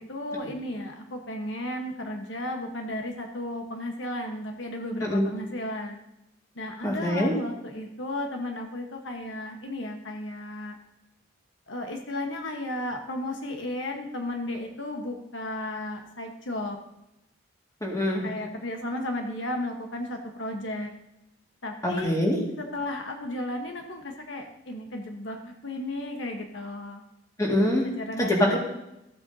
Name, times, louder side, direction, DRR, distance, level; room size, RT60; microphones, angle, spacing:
voice 1, 0.0-6.0 6.5-10.8 11.7-16.8 18.2-20.9 21.6-22.1 22.6-25.4 25.6-27.0 28.0-28.6, left 1 dB, 75° left, 3 dB, 1.2 m, -34 dB
voice 2, 6.8-7.3 17.8-18.3 21.8-22.4 27.4-27.9 28.2-28.6, left 1 dB, 20° left, -2 dB, 2.0 m, -24 dB
14.5 x 7.7 x 2.8 m, 0.85 s
head